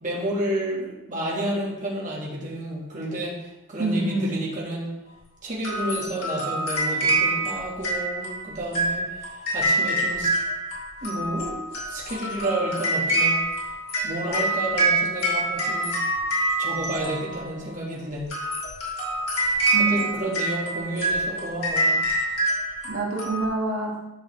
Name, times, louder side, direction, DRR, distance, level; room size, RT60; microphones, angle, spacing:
voice 1, 0.0-4.9 5.4-10.3 11.0-11.6 11.9-13.4 14.0-16.0 16.6-18.3 19.7-22.0, right 1 dB, 35° right, -5 dB, 1.6 m, -30 dB
voice 2, 3.8-4.3 19.7-20.1 22.8-24.1, right 2 dB, 70° right, -3 dB, 1.5 m, -26 dB
sound 1, 5.6-17.6 18.2-23.5, right 1 dB, 85° left, 2.5 m, -26 dB
10.0 x 5.6 x 3.1 m, 0.96 s
head